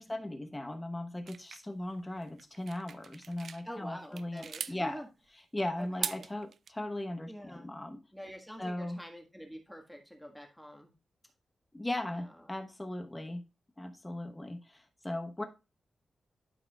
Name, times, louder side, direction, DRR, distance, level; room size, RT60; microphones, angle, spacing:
voice 1, 0.0-5.0 5.5-8.0 8.6-9.0 11.7-13.4 13.8-15.4, left 1 dB, 15° left, 5 dB, 1.0 m, -38 dB
sound 1, 1.3-3.6 4.0-4.8 5.8-6.7, right 6 dB, 65° right, 0.3 m, -40 dB
voice 2, 3.6-5.1 5.7-6.3 7.3-7.7 8.1-10.9 12.0-12.5 15.4-15.5, equal, ahead, 3 dB, 1.6 m, -46 dB
12.0 x 4.8 x 2.4 m, 0.29 s
wide cardioid pair, 110°, 0 cm